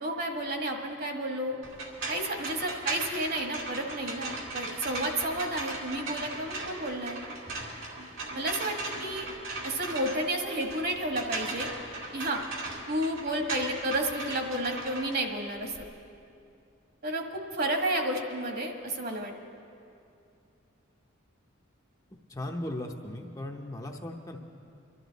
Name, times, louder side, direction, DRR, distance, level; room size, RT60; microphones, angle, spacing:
voice 1, 0.0-1.6 2.1-7.2 8.3-9.3 9.6-11.7 12.1-12.4 12.9-15.8 17.0-19.3, right 1 dB, 50° right, 3 dB, 1.6 m, -31 dB
sound 1, 1.6-15.8, right 2 dB, 80° right, 2.5 m, -38 dB
voice 2, 22.3-24.4, left 1 dB, 20° left, 2 dB, 0.8 m, -37 dB
23.5 x 12.5 x 4.0 m, 2.5 s
head